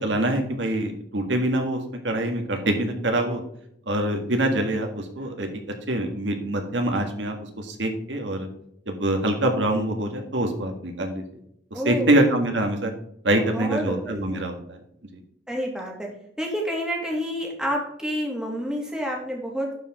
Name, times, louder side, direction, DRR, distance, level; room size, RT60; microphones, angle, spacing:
voice 1, 0.0-3.4 3.9-5.5 5.9-8.5 8.9-11.2 11.7-12.9 13.2-14.8 15.1-15.2, right 1 dB, 85° right, 4 dB, 1.8 m, -25 dB
voice 2, 11.7-12.2 13.3-14.4 15.5-16.1 16.4-19.7, equal, 5° right, -1 dB, 2.2 m, -29 dB
11.5 x 5.1 x 3.7 m, 0.71 s
head